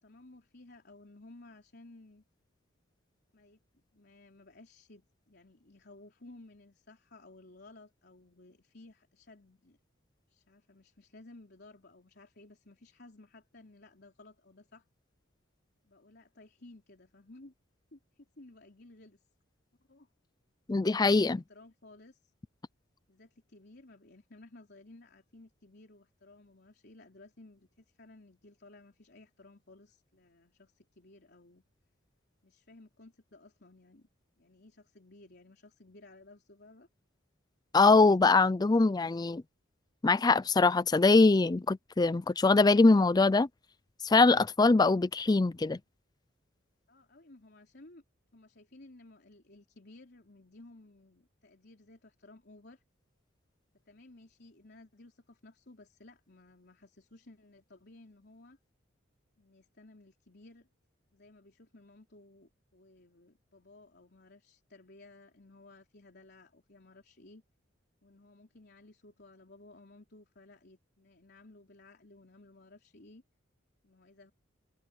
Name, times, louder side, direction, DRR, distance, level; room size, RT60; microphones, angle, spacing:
voice 1, 0.0-2.2 3.3-3.6 3.9-9.8 10.3-14.9 15.8-17.5 17.9-19.3 19.9-20.1 21.2-22.3 23.1-31.6 32.4-34.1 34.4-36.9 46.9-48.0 48.3-52.8 53.9-58.6 59.4-60.7 61.1-67.4 68.0-73.2 73.8-74.3, left 2 dB, 55° left, 3.8 m, -56 dB
voice 2, 20.7-21.4 37.7-39.4 40.0-43.5 44.0-45.8, left 3 dB, 20° left, 0.4 m, -23 dB
open air
head